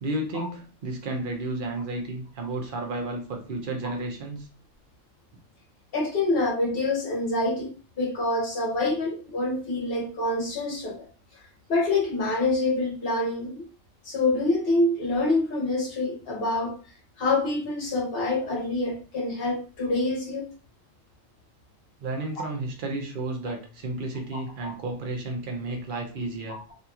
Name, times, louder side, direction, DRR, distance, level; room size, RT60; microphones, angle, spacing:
voice 1, 0.0-4.5 22.0-26.6, right 2 dB, 55° right, 2 dB, 0.7 m, -32 dB
voice 2, 5.9-11.1 11.7-13.6 14.0-16.8 17.2-20.5 24.6-24.7, left 2 dB, 50° left, -1 dB, 1.0 m, -26 dB
2.8 x 2.7 x 2.3 m, 0.37 s
omnidirectional pair, 1.3 m